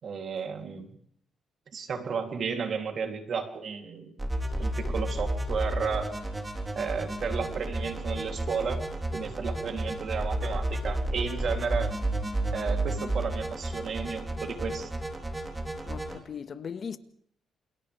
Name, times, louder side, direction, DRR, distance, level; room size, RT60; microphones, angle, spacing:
voice 1, 0.0-1.0 1.7-4.2 4.6-6.1 6.7-8.8 9.1-11.9 12.5-14.9, right 6 dB, 55° right, 3.2 m, -33 dB
sound 1, 4.2-16.2, right 1 dB, 15° right, 3.9 m, -32 dB
voice 2, 15.9-17.0, left 7 dB, 50° left, 1.7 m, -38 dB
29.0 x 28.5 x 3.5 m
cardioid pair, 90°, 0 cm